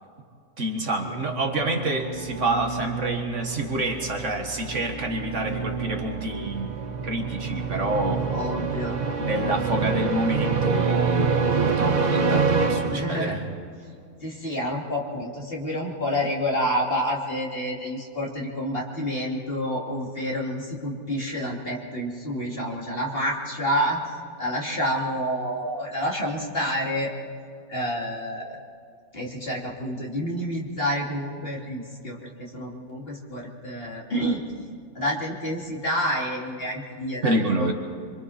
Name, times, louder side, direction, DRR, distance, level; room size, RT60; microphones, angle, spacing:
voice 1, 0.6-6.7 7.0-8.3 9.2-13.4 37.2-37.7, right 2 dB, 55° right, 3 dB, 1.9 m, -27 dB
sound 1, 0.9-13.6, right 5 dB, 35° right, 0.9 m, -27 dB
voice 2, 8.3-9.0 12.9-13.4 14.2-27.1 27.7-28.6 29.1-34.4 34.9-37.7, equal, 40° left, -3 dB, 3.0 m, -29 dB
26.5 x 25.5 x 4.3 m, 2.3 s
omnidirectional pair, 1.5 m